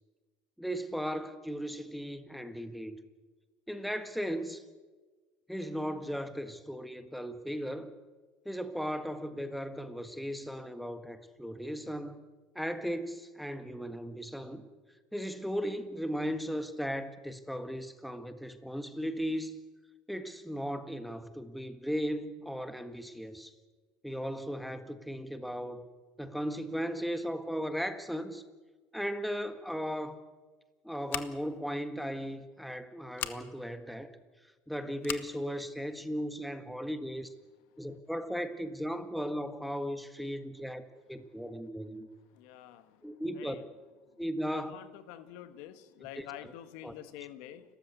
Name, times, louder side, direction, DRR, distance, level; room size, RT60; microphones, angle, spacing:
voice 1, 0.6-3.0 3.7-4.6 5.5-7.9 8.5-12.2 12.6-14.7 15.1-19.6 20.1-23.5 24.0-25.9 26.2-28.4 28.9-30.2 30.8-34.1 34.7-37.3 37.8-42.1 43.0-43.6 44.2-44.8 46.0-46.5 46.8-46.9, equal, ahead, 9 dB, 1.6 m, -36 dB
Scissors, 31.1-31.6 33.1-33.4 35.0-35.3, left 13 dB, 55° left, 1.4 m, -37 dB
voice 2, 42.3-42.8 43.4-43.5 44.5-47.6, left 12 dB, 75° left, 11 dB, 1.5 m, -47 dB
29.5 x 14.0 x 8.2 m, 1.3 s
supercardioid pair, 115°, 4 cm